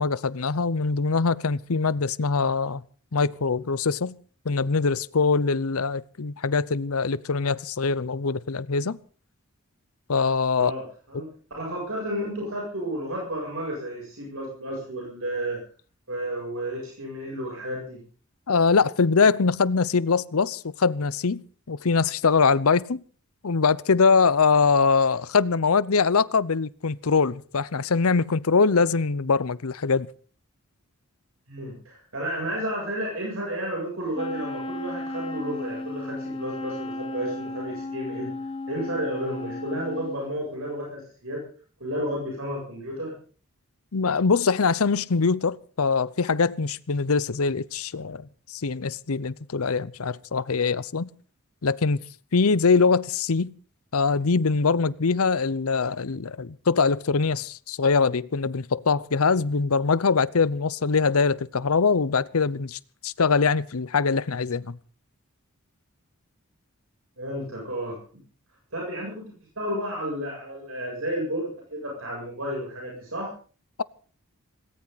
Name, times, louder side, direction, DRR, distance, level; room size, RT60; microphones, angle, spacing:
voice 1, 0.0-2.8 3.1-4.1 4.4-9.0 10.1-10.7 18.5-23.0 23.4-30.1 43.9-51.1 51.6-52.0 52.3-53.5 53.9-64.8, left 4 dB, 80° left, 0.7 m, -23 dB
voice 2, 10.6-11.3 11.6-15.6 16.1-18.0 31.5-38.3 38.7-41.4 41.8-43.1 67.2-68.0 68.7-73.3, equal, 70° right, 7.8 m, -32 dB
Wind instrument woodwind instrument, 34.1-40.3, left 1 dB, 25° left, 1.2 m, -34 dB
19.0 x 17.5 x 4.1 m
head